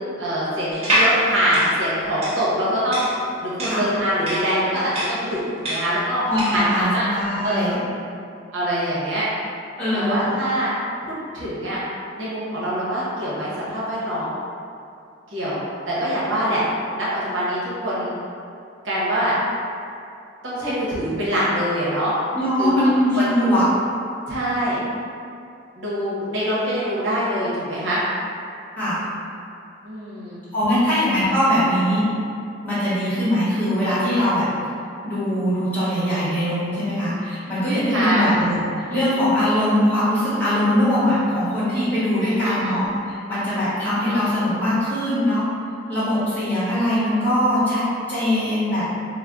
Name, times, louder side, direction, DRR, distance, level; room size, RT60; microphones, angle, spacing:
voice 1, 0.2-3.1 3.4-6.2 6.5-7.1 7.4-7.8 8.5-9.3 9.9-10.7 11.1-11.8 12.2-14.3 15.3-15.6 15.9-16.6 16.9-18.1 18.8-19.3 20.4-22.1 22.6-22.7 23.1-23.4 24.3-24.8 25.8-28.0 29.8-30.4 37.9-38.3 42.2-42.8, equal, 75° right, -8 dB, 0.8 m, -24 dB
sound 1, 0.7-6.7, right 1 dB, 35° right, 0.7 m, -25 dB
voice 2, 6.3-7.8 9.8-10.4 22.3-23.6 28.8-29.0 30.5-32.1 32.6-34.4 35.0-38.6 38.9-45.5 45.9-48.8, equal, 10° left, -13 dB, 1.0 m, -21 dB
2.5 x 2.0 x 3.4 m, 2.5 s
head